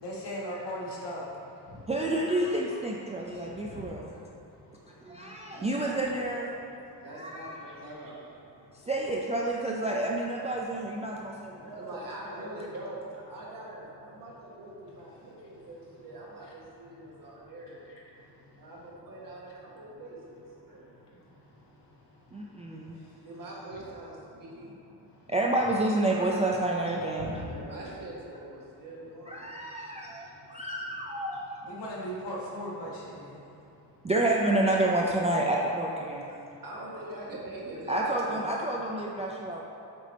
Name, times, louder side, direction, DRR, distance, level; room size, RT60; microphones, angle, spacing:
voice 1, 0.0-1.2 3.7-3.8 27.2-27.3 31.7-33.3, equal, 85° left, -4 dB, 1.4 m, -37 dB
voice 2, 1.9-4.1 5.0-6.5 7.1-7.6 8.8-11.6 12.6-12.7 22.3-23.0 25.3-27.4 29.3-31.5 34.0-36.2 37.9-39.6, right 1 dB, 20° right, -3 dB, 0.3 m, -29 dB
voice 3, 5.5-6.4 7.0-8.4 11.6-17.8 18.6-20.9 23.2-24.8 27.4-29.4 36.1-38.4, right 1 dB, 55° right, -5 dB, 1.4 m, -43 dB
7.5 x 3.4 x 4.1 m, 2.7 s
wide cardioid pair, 145°, 41 cm